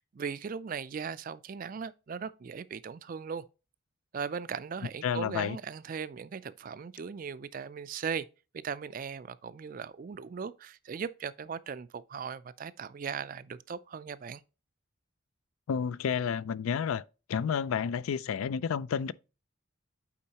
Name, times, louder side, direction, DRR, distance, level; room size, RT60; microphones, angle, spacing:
voice 1, 0.0-3.4 4.1-8.3 8.5-14.4, right 6 dB, 40° right, 0.3 m, -38 dB
voice 2, 5.0-5.6 15.7-17.0 17.3-19.1, left 7 dB, 80° left, 0.3 m, -30 dB
8.5 x 4.5 x 2.8 m
head